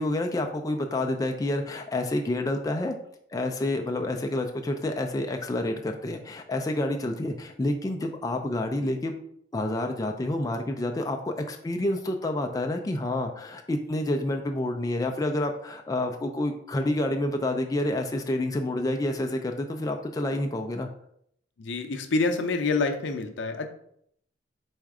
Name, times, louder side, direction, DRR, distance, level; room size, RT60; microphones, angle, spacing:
voice 1, 0.0-2.9 3.3-9.1 9.5-20.9, left 1 dB, 20° left, 4 dB, 0.3 m, -28 dB
voice 2, 21.6-23.7, left 3 dB, 75° left, 6 dB, 0.6 m, -27 dB
4.2 x 2.4 x 4.7 m, 0.69 s
head